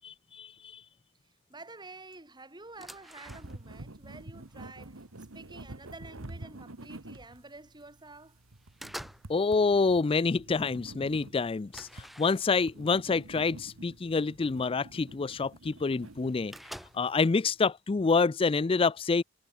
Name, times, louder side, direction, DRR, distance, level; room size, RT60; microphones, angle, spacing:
voice 1, 0.0-0.8 9.3-16.5 16.9-19.2, left 4 dB, 25° left, 0.4 m, -27 dB
voice 2, 1.2-8.4, right 3 dB, 20° right, 3.6 m, -50 dB
sound 1, 2.6-3.9 4.2-5.4 6.0-6.1 6.5-7.4 7.8-8.2 8.5-9.4 9.7-10.2 10.6-10.7 11.0-11.1 11.7-12.8 13.6-13.7 14.2-14.3 15.4-15.5 15.7-15.8 16.0-17.2, equal, ahead, 3.2 m, -48 dB
sound 2, 3.3-17.5, right 2 dB, 90° right, 1.9 m, -48 dB
head